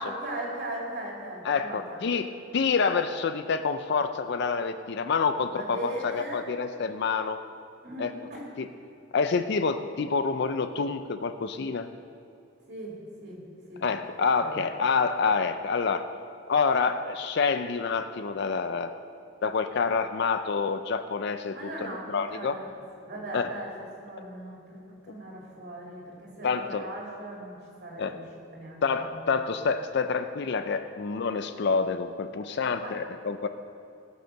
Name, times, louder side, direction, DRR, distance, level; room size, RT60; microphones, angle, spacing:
voice 1, 0.0-2.0 5.4-6.4 7.8-8.5 12.7-13.4 13.7-13.8 14.4-14.6 21.5-22.7 23.0-23.7 24.0-28.2 28.5-29.3 32.8-32.9, right 1 dB, 50° right, -4 dB, 2.5 m, -39 dB
voice 2, 1.4-7.4 8.0-8.1 8.6-8.7 9.1-11.9 13.8-16.1 16.5-18.9 19.4-22.5 23.3-23.5 26.4-26.8 28.0-28.2 28.8-33.5, left 5 dB, 55° left, 9 dB, 0.4 m, -27 dB
17.5 x 6.6 x 6.5 m, 2.7 s
head